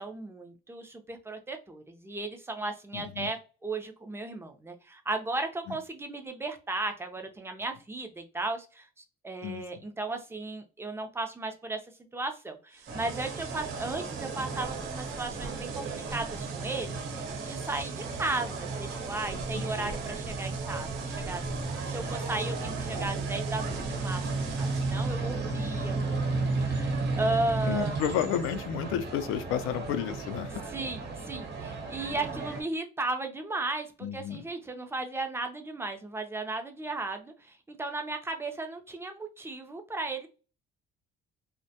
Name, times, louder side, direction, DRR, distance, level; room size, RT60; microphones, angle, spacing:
voice 1, 0.0-8.9 9.2-11.8 12.1-20.9 21.2-21.4 21.9-26.2 26.5-28.0 30.7-40.3, right 2 dB, 10° right, 0.4 m, -35 dB
voice 2, 2.9-3.3 5.7-5.8 9.4-9.8 19.5-19.6 25.5-25.7 27.7-30.6 34.0-34.4, left 10 dB, 80° left, 0.4 m, -32 dB
sound 1, 12.7-25.3, right 5 dB, 85° right, 0.5 m, -44 dB
sound 2, 12.9-32.6, right 3 dB, 50° right, 0.9 m, -34 dB
2.1 x 2.1 x 2.7 m
cardioid pair, 105°, 21 cm